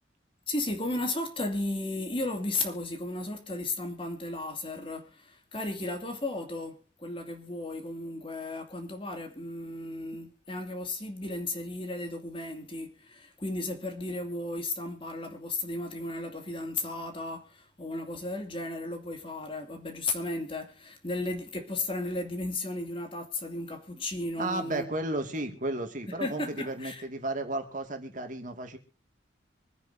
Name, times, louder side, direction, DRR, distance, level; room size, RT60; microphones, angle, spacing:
voice 1, 0.5-24.9 26.1-27.0, left 2 dB, 30° left, 2.5 m, -35 dB
voice 2, 24.4-28.8, right 2 dB, 45° right, 2.2 m, -33 dB
25.5 x 9.5 x 2.7 m
head